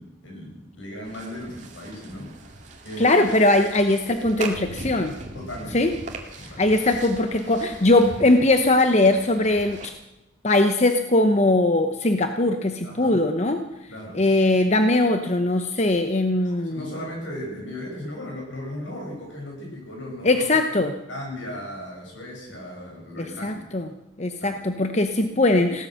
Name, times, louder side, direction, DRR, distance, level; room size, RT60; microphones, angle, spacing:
voice 1, 0.0-2.3 2.8-3.2 5.3-5.8 6.4-6.7 12.8-13.2 13.9-14.2 16.4-20.6 21.1-23.7 24.4-24.6, left 1 dB, 80° left, -1 dB, 7.8 m, -36 dB
sound 1, 1.0-9.9, right 2 dB, 40° right, 2.1 m, -40 dB
voice 2, 3.0-5.1 5.7-5.9 6.6-9.9 10.4-13.6 14.1-16.9 20.2-20.9 23.2-23.9 24.2-25.9, left 2 dB, 35° left, 6 dB, 0.9 m, -20 dB
17.0 x 13.0 x 6.5 m, 0.93 s
head